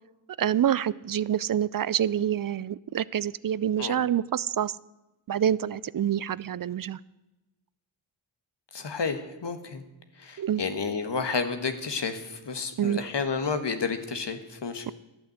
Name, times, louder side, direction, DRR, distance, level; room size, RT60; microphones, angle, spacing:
voice 1, 0.4-4.8 5.3-7.0 10.4-10.6 12.8-13.1, right 10 dB, 45° right, 0.4 m, -27 dB
voice 2, 8.7-9.8 10.2-14.9, left 5 dB, 60° left, 1.5 m, -31 dB
12.5 x 8.5 x 7.8 m
cardioid pair, 55°, 49 cm